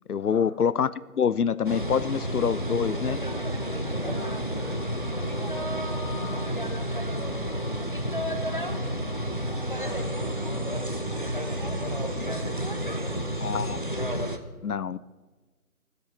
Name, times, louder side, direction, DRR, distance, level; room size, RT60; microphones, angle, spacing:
voice 1, 0.1-3.2 13.4-13.8 14.6-15.0, left 7 dB, 80° left, 19 dB, 0.6 m, -26 dB
sound 1, 1.6-14.4, equal, 35° left, 0.5 m, -30 dB
voice 2, 3.6-9.3 9.8-13.8, equal, 10° right, -10 dB, 2.1 m, -43 dB
13.0 x 8.0 x 5.5 m, 1.3 s
figure-of-eight pair, 160°, 44 cm